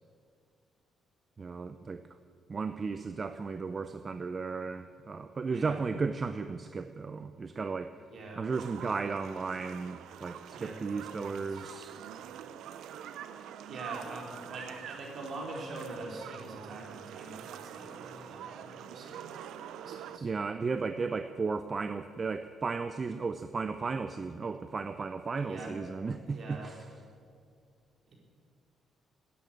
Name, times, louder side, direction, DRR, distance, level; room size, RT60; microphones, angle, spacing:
voice 1, 1.4-2.0 2.5-7.9 8.4-11.9 20.2-26.8, right 4 dB, 35° right, 10 dB, 0.6 m, -35 dB
voice 2, 5.5-5.8 8.1-8.5 10.5-11.6 13.7-19.3 19.8-20.3 25.4-25.7 26.3-26.7 28.1-28.2, right 2 dB, 55° right, -1 dB, 4.0 m, -44 dB
sound 1, 8.5-20.2, right 9 dB, 85° right, 0.7 m, -45 dB
13.0 x 10.0 x 8.9 m, 2.3 s
cardioid pair, 90°, 0 cm